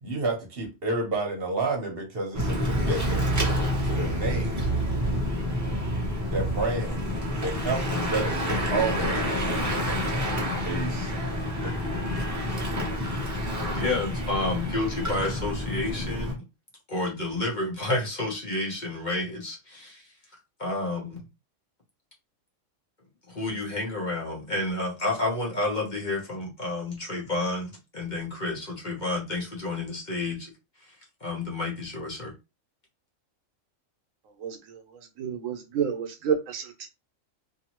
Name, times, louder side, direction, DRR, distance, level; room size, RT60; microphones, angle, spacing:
voice 1, 0.0-3.2 3.8-4.6 6.3-7.0 7.4-9.4 10.6-11.1 11.6-11.7, right 3 dB, 50° right, 1.0 m, -30 dB
Bicycle / Mechanisms, 2.3-16.3, equal, 20° right, 0.6 m, -28 dB
voice 2, 13.7-16.4 16.9-20.0 20.6-21.3 23.3-30.5 31.2-32.3, left 2 dB, 40° left, 0.9 m, -30 dB
voice 3, 34.4-36.9, right 7 dB, 75° right, 1.1 m, -30 dB
2.7 x 2.7 x 2.9 m
omnidirectional pair, 1.4 m